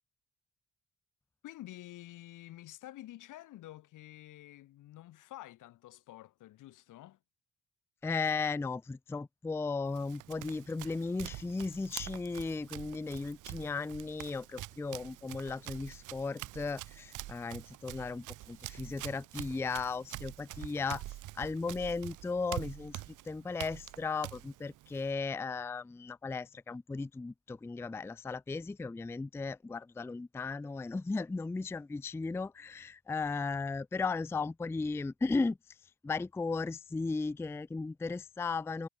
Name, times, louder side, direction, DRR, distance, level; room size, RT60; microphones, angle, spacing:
voice 1, 1.4-7.2, left 15 dB, 85° left, 5.3 m, -49 dB
voice 2, 8.0-21.0 21.3-35.6 36.0-38.9, left 4 dB, 10° left, 0.4 m, -36 dB
Run, 9.8-25.1, right 17 dB, 85° right, 0.9 m, -46 dB
cardioid pair, 90°, 30 cm